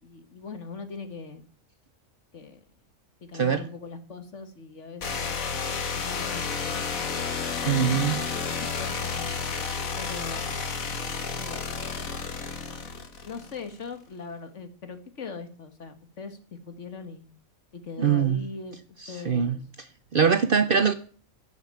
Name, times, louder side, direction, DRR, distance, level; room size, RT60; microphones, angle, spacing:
voice 1, 0.0-1.4 2.3-2.6 3.2-7.1 8.6-9.5 10.0-10.7 11.4-11.8 13.3-16.4 16.7-17.3 17.7-18.8 19.1-19.6, left 4 dB, 60° left, 9 dB, 1.9 m, -41 dB
sound 1, 5.0-13.7, left 5 dB, 80° left, 1.9 m, -31 dB
voice 2, 7.7-8.2 18.0-18.4 19.0-19.6 20.1-20.9, right 7 dB, 50° right, 13 dB, 0.7 m, -22 dB
12.0 x 7.0 x 8.6 m, 0.43 s
omnidirectional pair, 1.4 m